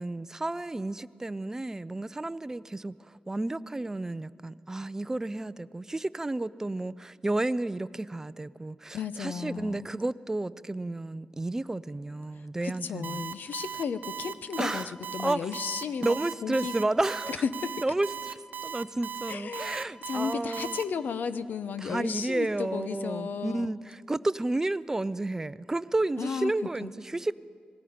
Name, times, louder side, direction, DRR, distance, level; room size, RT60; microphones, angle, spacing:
voice 1, 0.0-13.3 14.6-14.9 15.2-15.4 16.0-17.3 17.8-20.8 21.8-27.3, right 2 dB, 15° right, 0.4 m, -31 dB
voice 2, 8.9-9.9 12.3-16.7 17.3-17.8 19.3-23.7 26.2-26.5 26.8-26.9, left 6 dB, 85° left, 0.8 m, -34 dB
Alarm, 13.0-20.8, right 6 dB, 75° right, 0.8 m, -37 dB
26.5 x 19.5 x 5.1 m
wide cardioid pair, 120°, 3 cm